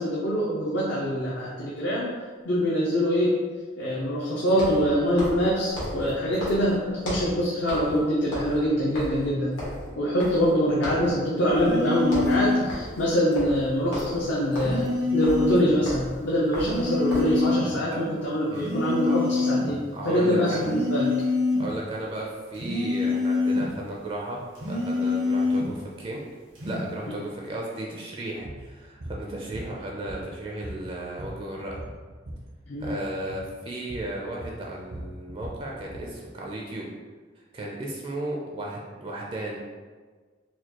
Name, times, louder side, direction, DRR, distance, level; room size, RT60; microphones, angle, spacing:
voice 1, 0.0-2.1 2.4-3.4 3.8-9.5 10.0-14.9 15.1-21.1 32.7-33.0, equal, 65° left, -5 dB, 0.5 m, -24 dB
sound 1, 1.2-1.3 4.5-7.4 7.7-10.6 10.8-11.1 11.5-11.8 12.0-17.4, equal, 85° left, 1.3 m, -36 dB
sound 2, 11.6-12.7 14.6-15.7 16.6-17.7 18.6-19.7 20.5-21.7 22.6-23.7 24.5-25.7 26.5-26.9, left 3 dB, 90° right, 1.3 m, -26 dB
voice 2, 19.9-20.7 21.6-24.4 24.7-26.2 26.6-31.8 32.8-36.9 37.5-39.6, right 1 dB, 30° right, -2 dB, 0.4 m, -35 dB
sound 3, 28.4-28.6 29.0-29.2 29.5-30.4 30.6-32.5 32.7-33.0 33.3-33.5 33.9-34.1 34.4-36.1, right 1 dB, 70° right, 0.7 m, -39 dB
4.2 x 2.3 x 2.9 m, 1.4 s
head